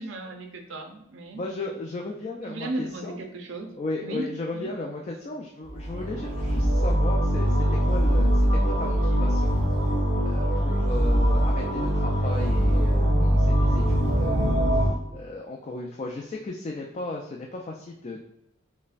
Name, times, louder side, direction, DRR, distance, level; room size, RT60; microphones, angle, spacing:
voice 1, 0.0-1.4 2.4-3.7 4.0-4.7, right 2 dB, 70° right, 5 dB, 0.6 m, -35 dB
voice 2, 1.3-3.2 3.8-9.5 10.2-18.2, left 2 dB, 35° left, 0 dB, 0.3 m, -36 dB
sound 1, 5.7-14.9, equal, 55° right, 1.2 m, -22 dB
5.2 x 2.1 x 2.5 m, 0.82 s
head